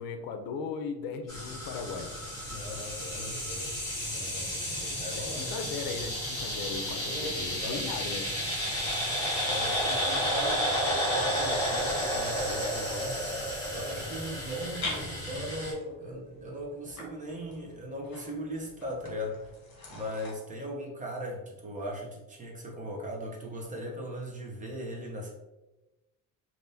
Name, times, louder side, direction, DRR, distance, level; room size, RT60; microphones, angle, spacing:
voice 1, 0.0-2.1 5.1-8.3, left 5 dB, 80° left, 7 dB, 0.5 m, -37 dB
sound 1, 1.3-15.7, equal, 10° left, 1.4 m, -32 dB
voice 2, 2.5-3.8 4.1-5.5 6.9-8.1 8.3-8.6 9.5-13.2 13.7-19.5 19.9-25.3, equal, 25° right, -1 dB, 0.7 m, -39 dB
sound 2, 11.1-20.3, left 2 dB, 50° left, 1.2 m, -45 dB
3.4 x 2.6 x 2.6 m, 1.0 s
cardioid pair, 130°, 34 cm